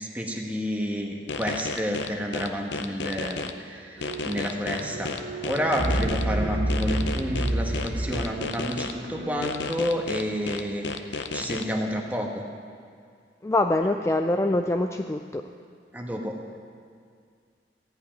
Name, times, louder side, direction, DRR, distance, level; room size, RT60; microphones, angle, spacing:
voice 1, 0.0-5.1 5.4-12.4 15.9-16.3, equal, 10° right, 1 dB, 1.2 m, -30 dB
sound 1, 1.3-3.5 4.0-6.2 6.7-8.9 9.4-11.6, left 4 dB, 75° left, 0.6 m, -32 dB
sound 2, 4.0-9.4, right 1 dB, 75° right, 1.0 m, -30 dB
voice 2, 13.4-15.4, left 2 dB, 15° left, 5 dB, 0.3 m, -24 dB
14.0 x 5.6 x 8.9 m, 2.2 s
head